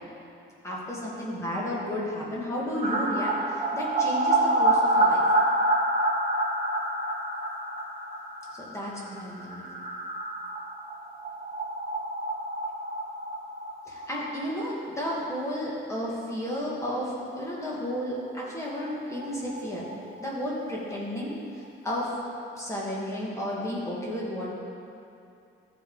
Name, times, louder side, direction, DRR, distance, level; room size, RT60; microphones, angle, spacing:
voice 1, 0.6-5.2 8.5-9.6 13.9-19.8 20.2-22.1 22.6-24.5, equal, 15° left, -6 dB, 1.5 m, -32 dB
sound 1, 2.8-14.4 14.7-14.8 15.1-15.2 18.2-18.3 18.5-18.6 18.9-20.6 20.9-21.0, right 1 dB, 30° right, 1.6 m, -27 dB
14.0 x 5.5 x 3.8 m, 2.6 s
wide cardioid pair, 165°, 21 cm